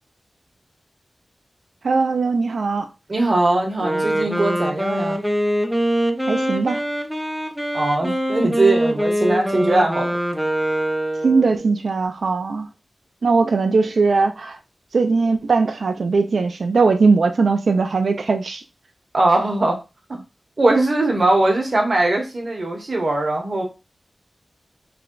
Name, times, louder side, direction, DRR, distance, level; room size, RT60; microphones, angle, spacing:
voice 1, 1.8-2.9 6.3-6.8 11.2-12.7 13.2-14.6 14.9-18.6, right 4 dB, 80° right, 0.4 m, -19 dB
voice 2, 3.1-5.2 7.7-10.1 19.1-19.8 20.1-20.2 20.6-23.6, right 2 dB, 55° right, 1.1 m, -20 dB
Wind instrument woodwind instrument, 3.8-11.7, right 1 dB, ahead, 0.6 m, -23 dB
3.3 x 2.2 x 3.8 m
wide cardioid pair, 70°, 0 cm